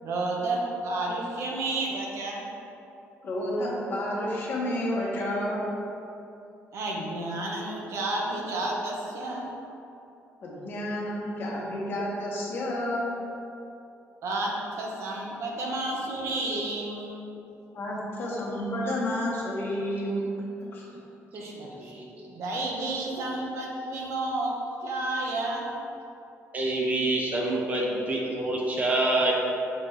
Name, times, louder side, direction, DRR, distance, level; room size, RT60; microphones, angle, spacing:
voice 1, 0.0-2.5 6.7-9.4 14.2-17.3 21.3-21.9 22.3-24.5 24.8-25.7, right 2 dB, 65° right, -2 dB, 1.0 m, -31 dB
voice 2, 3.2-5.6 10.4-13.0 17.7-20.2 20.6-20.8, left 1 dB, 45° left, -4 dB, 1.3 m, -30 dB
voice 3, 21.8-22.1 26.5-29.3, right 2 dB, 30° right, -2 dB, 0.9 m, -26 dB
6.7 x 3.1 x 5.0 m, 2.8 s
cardioid pair, 140°, 5 cm